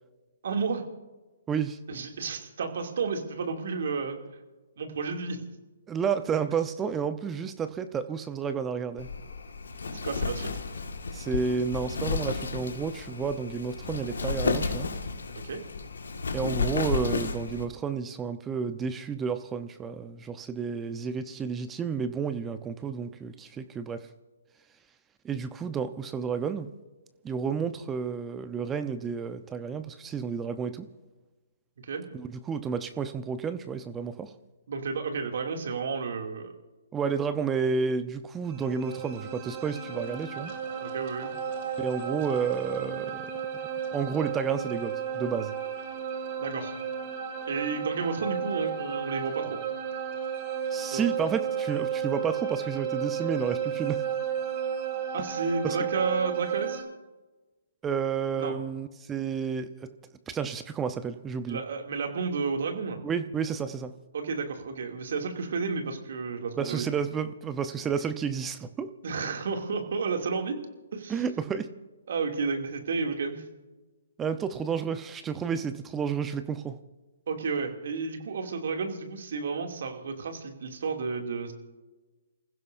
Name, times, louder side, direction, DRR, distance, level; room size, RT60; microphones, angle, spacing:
voice 1, 0.4-0.8 1.9-4.2 4.8-5.4 9.9-10.6 15.4-15.6 31.8-32.0 34.7-36.5 40.8-41.3 46.4-46.7 47.5-49.6 50.9-51.1 55.1-56.8 58.4-58.5 61.5-63.0 64.1-66.8 69.0-70.6 70.9-71.1 72.1-73.4 77.3-81.5, right 4 dB, 60° right, 3 dB, 2.7 m, -31 dB
voice 2, 1.5-1.8 5.9-9.1 11.1-14.9 16.3-24.1 25.2-26.7 27.2-30.9 32.1-34.3 36.9-40.5 41.8-43.3 43.9-45.6 50.7-54.0 55.6-55.8 57.8-59.9 60.3-61.6 63.0-63.9 66.6-68.9 71.1-71.7 74.2-76.8, right 6 dB, 15° right, 10 dB, 0.9 m, -31 dB
Wind, 9.0-17.7, left 4 dB, 75° left, 1.8 m, -32 dB
sound 1, 38.5-56.8, right 8 dB, 40° right, 2.5 m, -33 dB
29.5 x 15.5 x 2.7 m, 1.2 s
hypercardioid pair, 135°, 0 cm